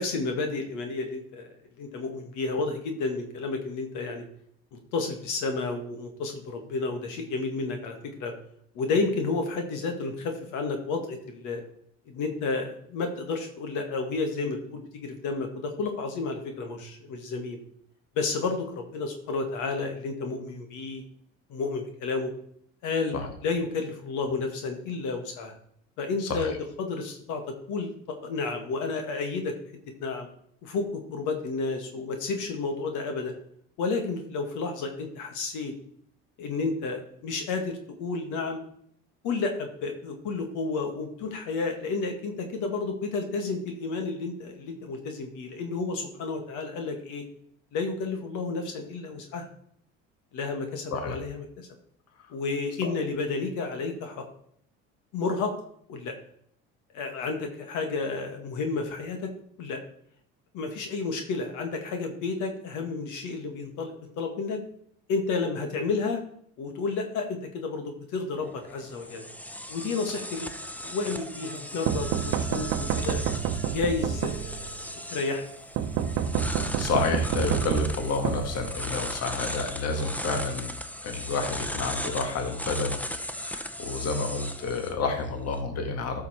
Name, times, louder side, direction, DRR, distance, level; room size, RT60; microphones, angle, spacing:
voice 1, 0.0-1.5 1.8-4.2 4.7-8.3 8.7-11.6 12.1-17.6 18.2-21.0 21.5-22.3 22.8-25.6 26.0-27.4 27.7-29.5 30.0-30.3 30.6-33.3 33.8-35.7 36.4-38.6 39.2-47.2 47.7-49.5 50.3-51.7 52.3-54.2 55.1-55.5 55.9-56.1 56.9-59.3 59.6-59.8 60.5-64.6 65.1-66.2 66.6-69.2 69.7-70.5 70.8-73.2 73.7-75.5, left 4 dB, 70° left, 5 dB, 1.8 m, -31 dB
sound 1, 68.4-85.6, left 1 dB, 5° left, 0.9 m, -37 dB
sound 2, 71.9-74.8 75.8-79.1, right 8 dB, 70° right, 0.8 m, -29 dB
voice 2, 76.4-80.7 81.0-83.0 83.3-86.2, left 3 dB, 50° left, 5 dB, 1.8 m, -30 dB
13.0 x 5.8 x 4.3 m, 0.68 s
supercardioid pair, 90°, 32 cm